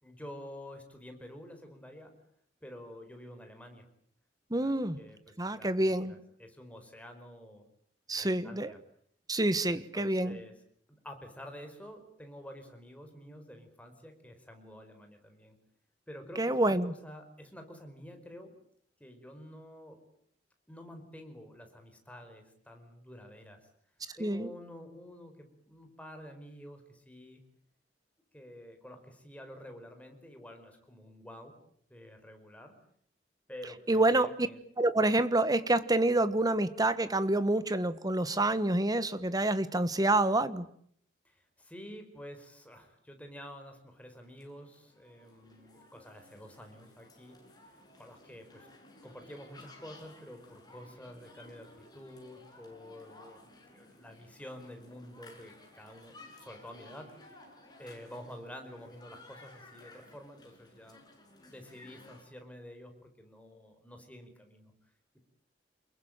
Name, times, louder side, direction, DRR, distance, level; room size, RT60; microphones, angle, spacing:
voice 1, 0.0-2.1 2.6-3.9 4.6-7.6 8.1-8.8 9.7-10.5 10.9-15.6 16.1-18.6 19.0-20.0 20.7-23.7 24.2-27.4 28.3-31.6 31.9-32.7 33.5-34.6 41.2-47.4 48.0-48.7 49.0-57.1 57.8-61.0 61.4-64.7, equal, 10° left, 4.9 m, -49 dB
voice 2, 4.5-5.0 5.4-6.1 8.1-8.7 9.3-10.4 16.4-16.9 24.2-24.5 33.9-34.5 34.8-40.7, right 2 dB, 20° right, 1.4 m, -27 dB
sound 1, 44.1-62.2, left 2 dB, 25° left, 7.6 m, -56 dB
28.0 x 22.5 x 9.0 m
head